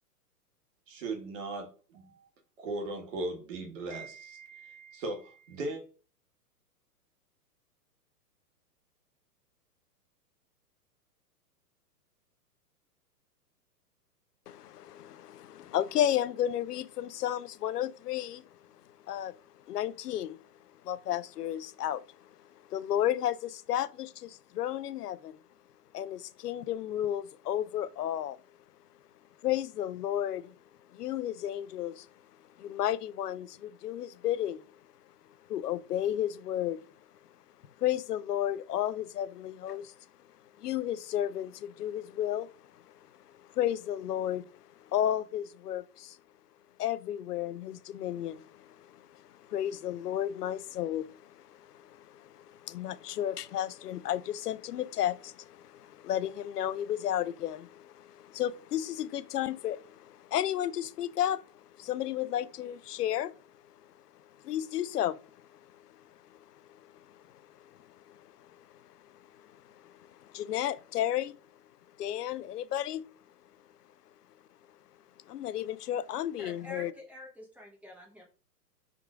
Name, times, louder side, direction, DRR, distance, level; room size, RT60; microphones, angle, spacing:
voice 1, 0.9-2.3 2.6-5.8, right 2 dB, 50° right, 1.6 m, -38 dB
voice 2, 14.5-18.4 19.1-19.4 19.7-20.4 20.8-22.0 22.7-25.4 25.9-28.4 29.4-30.5 30.9-32.1 32.6-34.6 35.5-36.8 37.8-39.9 40.6-42.5 43.5-44.4 44.9-46.2 46.8-61.4 61.8-63.4 64.4-65.2 66.3-66.4 67.1-67.2 67.7-68.2 69.5-69.9 70.2-71.4 72.0-73.0 75.3-76.9, left 11 dB, 75° left, 0.6 m, -33 dB
voice 3, 76.4-78.2, left 1 dB, 5° right, 0.9 m, -47 dB
5.9 x 3.6 x 2.4 m
hypercardioid pair, 125°, 48 cm